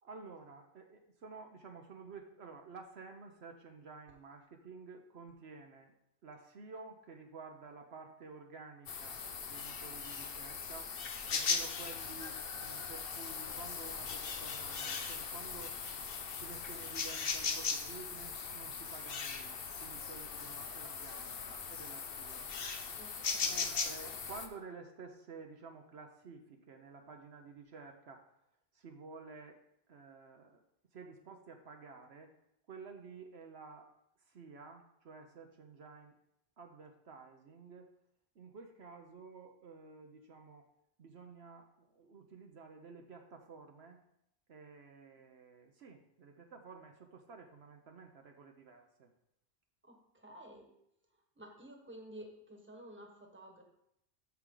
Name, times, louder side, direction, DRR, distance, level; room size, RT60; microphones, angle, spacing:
voice 1, 0.0-5.9 6.2-11.0 11.3-15.7 16.4-22.4 23.4-28.3 28.7-29.6 29.9-30.6 30.9-32.3 32.7-33.9 34.3-36.1 36.6-37.9 38.3-40.7 41.0-44.0 44.5-49.1, right 4 dB, 65° right, 4 dB, 1.1 m, -52 dB
sound 1, 8.9-24.5, left 5 dB, 55° left, 1.0 m, -39 dB
voice 2, 23.0-23.7 49.8-50.7 51.4-53.6, right 1 dB, 10° right, 2 dB, 1.3 m, -52 dB
13.0 x 4.7 x 3.8 m, 0.77 s
omnidirectional pair, 1.2 m